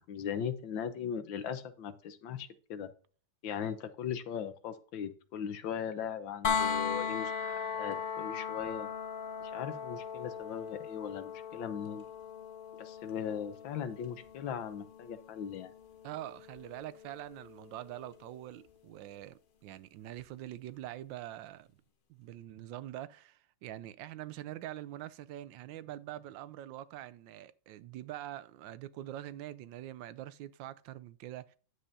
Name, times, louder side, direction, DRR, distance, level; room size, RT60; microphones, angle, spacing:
voice 1, 0.0-2.9 3.4-8.9 9.4-12.0 12.8-15.7, left 8 dB, 80° left, 1.7 m, -39 dB
sound 1, 6.4-18.3 20.2-20.3, left 6 dB, 55° left, 0.6 m, -38 dB
voice 2, 16.0-21.7 22.1-31.6, right 13 dB, 80° right, 1.3 m, -44 dB
9.8 x 7.6 x 2.8 m
omnidirectional pair, 2.1 m